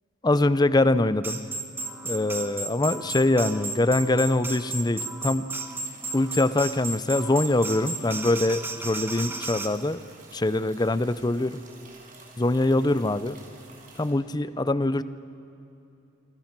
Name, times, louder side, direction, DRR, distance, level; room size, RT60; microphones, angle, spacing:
voice 1, 0.2-1.4 2.0-5.5 6.1-10.0 10.3-11.6 12.4-13.4 14.0-15.0, left 2 dB, 20° left, 15 dB, 0.5 m, -23 dB
sound 1, 1.2-9.7, right 2 dB, 10° right, 1.2 m, -34 dB
sound 2, 5.6-14.1, right 3 dB, 40° right, 5.3 m, -51 dB
26.5 x 25.5 x 6.1 m, 2.8 s
head